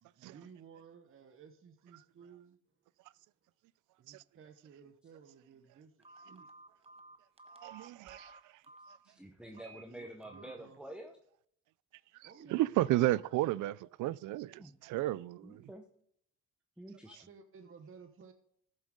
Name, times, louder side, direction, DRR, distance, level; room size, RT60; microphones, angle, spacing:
voice 1, 0.0-2.6 4.0-6.5 6.9-7.0 9.5-10.8 11.9-12.9 17.3-18.3, right 6 dB, 45° right, 1.0 m, -56 dB
Telephone, 6.0-9.0 9.5-9.8 10.2-10.5, right 2 dB, 20° right, 1.0 m, -55 dB
voice 2, 7.6-8.4 12.2-15.7, right 16 dB, 85° right, 0.4 m, -33 dB
voice 3, 9.0-11.2 14.6-14.8 15.4-15.9 16.8-17.3, right 1 dB, 5° right, 1.0 m, -48 dB
13.5 x 7.5 x 3.7 m
cardioid pair, 90°, 30 cm